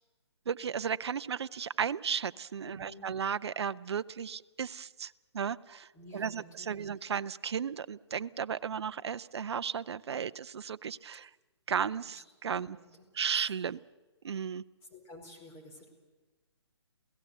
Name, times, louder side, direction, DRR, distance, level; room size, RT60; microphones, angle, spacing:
voice 1, 0.5-11.3 11.7-12.8 13.1-13.8 14.2-14.6, right 7 dB, 65° right, 15 dB, 0.7 m, -35 dB
voice 2, 2.6-3.1 5.9-6.9 12.0-12.2 12.6-13.0 14.9-15.9, left 2 dB, 15° left, 1 dB, 4.8 m, -51 dB
28.5 x 17.0 x 8.0 m, 1.2 s
figure-of-eight pair, 145°, 15 cm